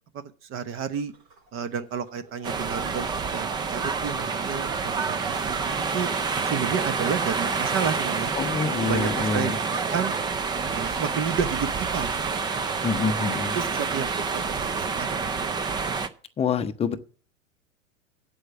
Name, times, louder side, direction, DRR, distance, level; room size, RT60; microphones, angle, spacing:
voice 1, 0.5-1.1 1.5-3.1 3.3-5.2 5.5-6.1 6.5-8.3 8.8-10.1 10.7-12.4 13.5-15.5, right 7 dB, 35° right, 13 dB, 1.0 m, -31 dB
Bird vocalization bird call bird song, 0.9-15.7, right 3 dB, 55° right, 3.4 m, -45 dB
sound 1, 2.4-16.1, right 5 dB, 10° right, 0.4 m, -28 dB
voice 2, 8.3-9.6 12.8-13.6 16.4-17.0, left 5 dB, 15° left, 9 dB, 0.7 m, -26 dB
8.0 x 7.1 x 7.0 m, 0.41 s
hypercardioid pair, 100°, 39 cm